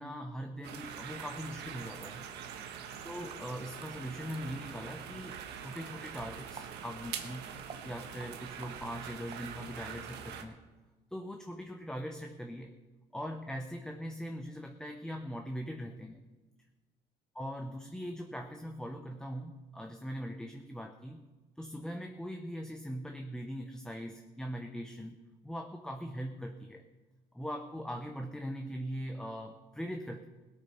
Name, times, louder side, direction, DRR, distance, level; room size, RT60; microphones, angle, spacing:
voice 1, 0.0-2.3 3.0-7.5 7.8-10.6 11.1-12.7 13.1-16.2 17.3-21.3 21.6-26.9 27.3-30.3, equal, 5° left, 4 dB, 0.8 m, -41 dB
sound 1, 0.6-10.4, right 8 dB, 80° right, 1.3 m, -44 dB
sound 2, 3.3-3.4 3.8-5.0 5.3-6.7 7.0-9.9, right 5 dB, 35° right, 1.0 m, -53 dB
17.5 x 8.3 x 5.6 m, 1.2 s
cardioid pair, 110°, 17 cm